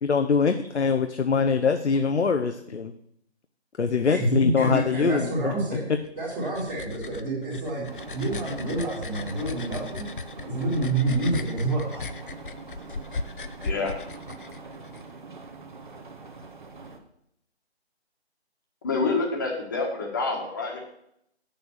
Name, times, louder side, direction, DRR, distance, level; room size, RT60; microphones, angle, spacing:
voice 1, 0.0-2.9 3.8-5.5 5.9-6.0, left 5 dB, 80° left, 7 dB, 0.9 m, -23 dB
voice 2, 4.1-7.8 8.1-10.0 10.4-12.0, right 2 dB, 10° right, -10 dB, 1.4 m, -28 dB
sound 1, 6.1-15.0, left 3 dB, 50° left, 0.6 m, -37 dB
sound 2, 7.9-17.0, right 3 dB, 45° right, 1.3 m, -43 dB
voice 3, 13.6-13.9 18.8-20.8, left 3 dB, 20° left, 1 dB, 1.3 m, -27 dB
8.0 x 6.8 x 7.4 m, 0.73 s
figure-of-eight pair, 165°, 33 cm